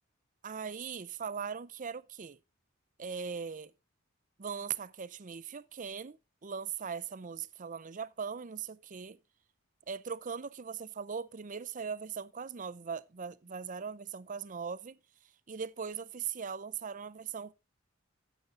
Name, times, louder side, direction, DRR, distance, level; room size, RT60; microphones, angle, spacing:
voice 1, 0.4-2.4 3.0-3.7 4.4-6.2 6.4-9.2 9.9-15.0 15.5-17.5, right 6 dB, 40° right, 0.6 m, -39 dB
15.5 x 7.0 x 2.5 m
head